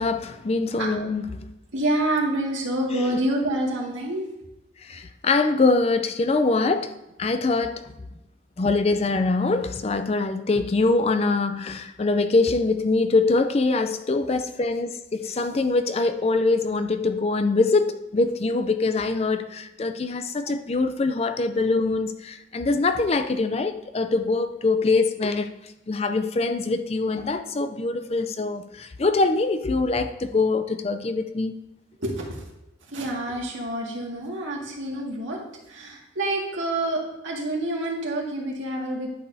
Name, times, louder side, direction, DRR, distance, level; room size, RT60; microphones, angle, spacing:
voice 1, 0.0-1.5 3.1-3.2 4.8-6.9 7.2-7.8 8.6-25.5 25.9-31.6, left 3 dB, 30° left, 0.4 m, -23 dB
voice 2, 1.7-4.2 20.5-20.6 32.0-32.4 32.9-35.4 35.7-39.1, right 1 dB, 85° right, 1.9 m, -27 dB
11.0 x 6.5 x 2.7 m
head